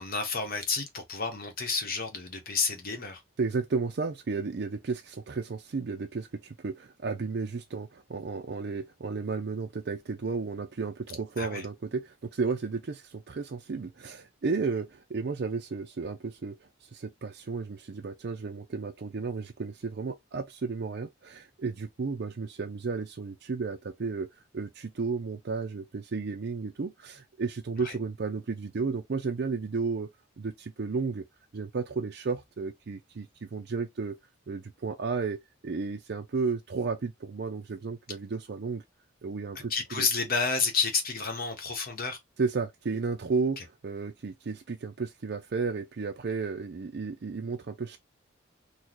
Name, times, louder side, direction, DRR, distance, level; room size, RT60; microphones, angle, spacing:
voice 1, 0.0-3.2 11.4-11.6 27.8-27.9 39.7-42.2, left 4 dB, 45° left, 0.9 m, -30 dB
voice 2, 3.4-24.3 24.5-30.1 30.4-31.2 31.5-34.2 34.5-38.8 39.2-40.1 42.4-48.0, right 4 dB, 50° right, 0.4 m, -33 dB
4.0 x 2.2 x 3.0 m
head